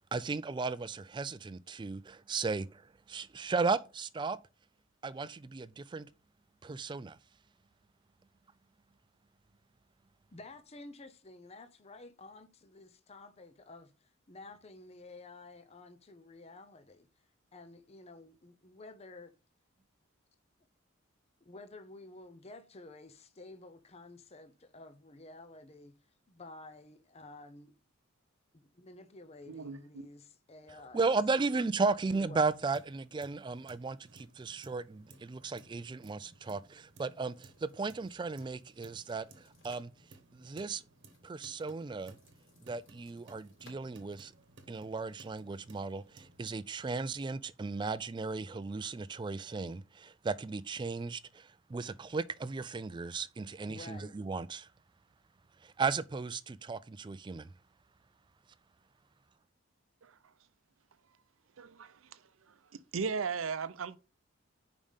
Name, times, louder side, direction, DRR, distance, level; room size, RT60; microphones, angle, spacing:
voice 1, 0.1-4.4 5.0-6.1 6.6-7.2 30.9-39.9 40.3-40.8 41.2-42.2 42.6-44.3 44.7-54.7 55.6-57.5, right 4 dB, 20° right, 0.3 m, -35 dB
voice 2, 10.3-17.1 17.5-19.3 21.4-25.9 26.3-27.7 28.5-31.1 32.1-32.4 53.7-54.1, left 2 dB, 30° left, 0.7 m, -51 dB
voice 3, 29.5-30.1 60.0-60.2 61.6-62.2 62.5-62.6 62.9-64.0, right 5 dB, 75° right, 0.6 m, -37 dB
sound 1, 32.4-46.5, right 2 dB, 60° right, 1.1 m, -60 dB
sound 2, 36.3-44.9, left 3 dB, 70° left, 3.5 m, -67 dB
5.3 x 5.0 x 5.5 m
head